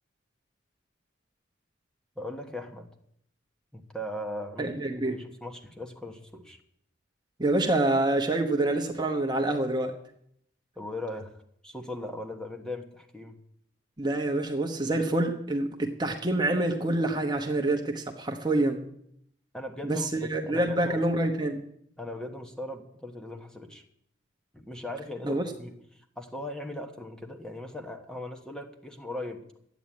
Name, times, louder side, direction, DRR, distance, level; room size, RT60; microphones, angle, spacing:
voice 1, 2.2-2.9 3.7-6.6 10.8-11.3 11.6-13.4 19.5-21.0 22.0-23.8 24.5-29.5, left 1 dB, 5° left, 4 dB, 1.3 m, -39 dB
voice 2, 4.6-5.2 7.4-9.9 14.0-18.8 19.8-21.6 25.2-25.4, right 2 dB, 20° right, 3 dB, 1.0 m, -27 dB
12.0 x 9.2 x 8.5 m, 0.72 s
head